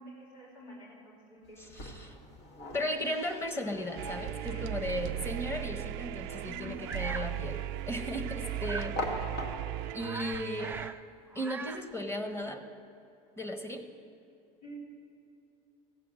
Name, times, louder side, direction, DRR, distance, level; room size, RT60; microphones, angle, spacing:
voice 1, 0.0-1.7 4.3-4.6 6.4-6.8 8.4-8.8 14.6-14.8, left 1 dB, 85° left, -5 dB, 3.4 m, -49 dB
sound 1, 1.4-9.9, left 1 dB, 65° left, 2.0 m, -44 dB
voice 2, 1.6-2.2 2.7-8.9 9.9-10.8 11.3-12.6 13.4-13.9, left 1 dB, 15° left, 5 dB, 1.3 m, -36 dB
sound 2, 4.0-10.9, right 15 dB, 70° right, 0.4 m, -37 dB
Bird vocalization bird call bird song, 6.9-7.3 8.6-9.0 9.5-9.6 9.8-11.0 11.3-11.9, right 4 dB, 10° right, 0.4 m, -41 dB
15.0 x 7.8 x 6.4 m, 2.6 s
supercardioid pair, 105°, 18 cm